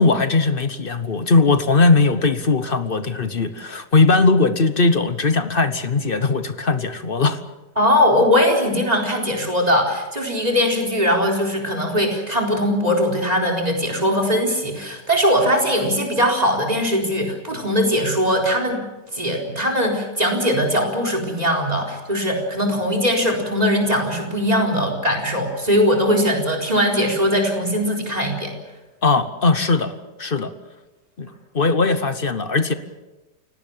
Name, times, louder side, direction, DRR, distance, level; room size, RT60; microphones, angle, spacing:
voice 1, 0.0-7.4 29.0-30.5 31.2-31.3 31.5-32.7, left 3 dB, 40° left, 11 dB, 1.0 m, -19 dB
voice 2, 7.8-18.8 19.1-28.5, equal, 20° right, 3 dB, 4.3 m, -20 dB
29.0 x 17.5 x 7.4 m, 1.1 s
omnidirectional pair, 1.8 m